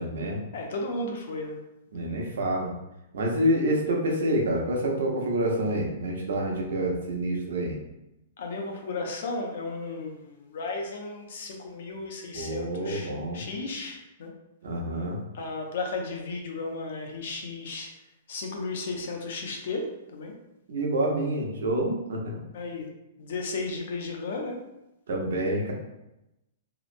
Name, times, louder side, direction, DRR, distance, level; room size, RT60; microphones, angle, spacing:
voice 1, 0.0-0.4 1.9-2.7 3.1-7.8 12.3-13.4 14.6-15.2 20.7-22.4 25.1-25.7, right 1 dB, 80° right, -1 dB, 0.7 m, -27 dB
voice 2, 0.5-1.6 8.4-14.3 15.3-17.9 18.3-20.3 22.5-22.9 23.2-24.6, left 3 dB, 50° left, 2 dB, 0.5 m, -34 dB
2.9 x 2.0 x 2.5 m, 0.91 s
hypercardioid pair, 175°, 0 cm